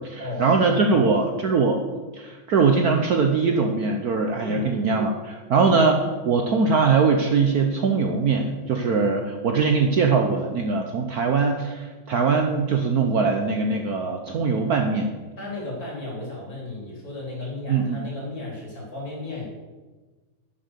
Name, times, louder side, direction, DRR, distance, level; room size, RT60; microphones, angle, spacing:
voice 1, 0.0-1.8 2.2-15.1 17.7-18.0, right 4 dB, 60° right, 4 dB, 1.1 m, -21 dB
voice 2, 0.9-1.2 4.4-4.7 5.6-5.7 15.4-19.4, left 2 dB, 45° left, -3 dB, 4.2 m, -34 dB
11.0 x 6.5 x 6.8 m, 1.3 s
omnidirectional pair, 2.2 m